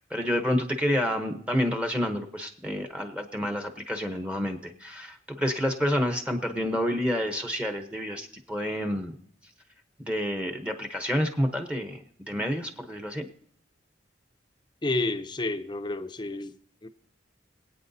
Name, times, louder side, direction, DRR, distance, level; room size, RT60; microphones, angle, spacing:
voice 1, 0.0-9.2 10.0-13.3, equal, 5° right, 0.8 m, -29 dB
voice 2, 14.8-16.5 16.8-16.9, left 2 dB, 25° left, 0.5 m, -30 dB
24.5 x 8.7 x 2.7 m
head